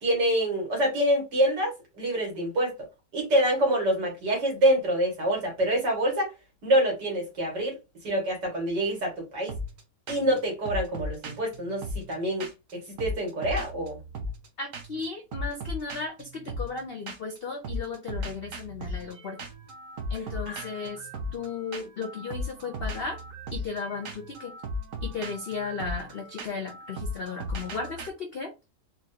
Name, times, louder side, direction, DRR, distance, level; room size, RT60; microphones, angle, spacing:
voice 1, 0.0-2.9 3.1-6.3 6.6-7.8 8.0-9.5 10.1-12.5 12.7-14.0 20.5-20.6, right 1 dB, 85° right, 2.4 m, -26 dB
sound 1, 9.5-9.8 10.1-10.4 10.6-12.7 13.0-14.5 14.7-15.0 15.3-17.4 17.6-28.1, left 1 dB, 60° right, 1.0 m, -37 dB
voice 2, 14.6-19.4 20.1-23.2 23.5-24.5 25.0-28.5, left 4 dB, 70° left, 0.5 m, -35 dB
4.2 x 2.4 x 2.8 m
omnidirectional pair, 1.8 m